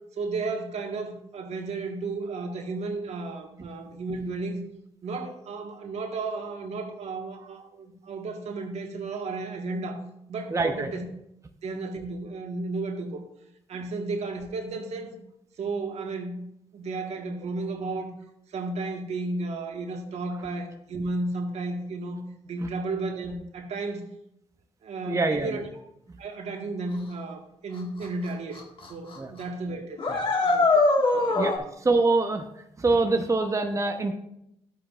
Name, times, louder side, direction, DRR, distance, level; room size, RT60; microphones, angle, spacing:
voice 1, 0.2-4.6 5.0-10.0 10.3-11.1 11.6-13.2 13.7-15.2 15.6-16.5 16.7-18.1 18.5-24.0 24.8-25.7 26.2-28.6 28.9-30.8 31.1-31.5, right 3 dB, 65° right, 4 dB, 1.5 m, -33 dB
voice 2, 10.5-10.9 22.6-22.7 25.1-25.6 29.2-29.3 31.3-31.5 31.8-32.4 32.8-34.1, right 3 dB, 25° right, 5 dB, 0.9 m, -24 dB
sound 1, 28.0-28.1 28.6-28.9 29.1-29.2 30.0-31.6, left 3 dB, 45° left, 1.8 m, -22 dB
12.0 x 8.7 x 2.5 m, 0.78 s
supercardioid pair, 60°, 12 cm